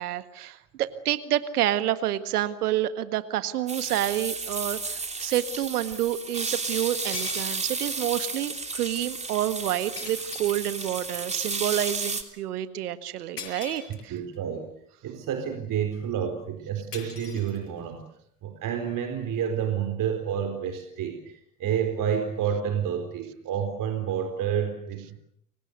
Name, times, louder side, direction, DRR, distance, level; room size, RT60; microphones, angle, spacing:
voice 1, 0.0-14.1, right 12 dB, 75° right, 12 dB, 1.8 m, -28 dB
sound 1, 3.7-12.2, right 4 dB, 15° right, 3.3 m, -33 dB
sound 2, 4.4-4.5 6.6-6.7 7.1-8.0 10.0-11.2 13.4-14.4 16.9-18.0, left 5 dB, 80° left, 6.6 m, -42 dB
voice 2, 14.1-14.7 15.0-18.0 18.4-25.2, right 8 dB, 45° right, 6 dB, 4.3 m, -29 dB
30.0 x 24.0 x 6.8 m, 0.70 s
hypercardioid pair, 80°, 46 cm